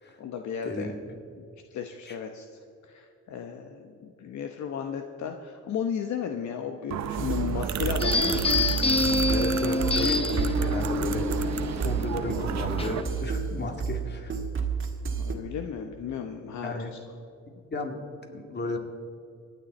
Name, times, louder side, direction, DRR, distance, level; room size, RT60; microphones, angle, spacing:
voice 1, 0.2-0.9 1.4-2.5 2.8-8.4 15.1-17.0, left 7 dB, 70° left, 5 dB, 0.9 m, -34 dB
sound 1, 6.9-13.0, right 9 dB, 65° right, 0.8 m, -32 dB
sound 2, 7.2-15.3, right 6 dB, 40° right, 1.7 m, -31 dB
sound 3, 8.0-13.2, left 3 dB, 20° left, 0.8 m, -27 dB
voice 2, 9.3-14.4 16.6-16.9 17.7-18.0 18.3-18.8, left 2 dB, 35° left, 4 dB, 2.2 m, -34 dB
25.0 x 9.3 x 4.2 m, 2.4 s
cardioid pair, 90°, 30 cm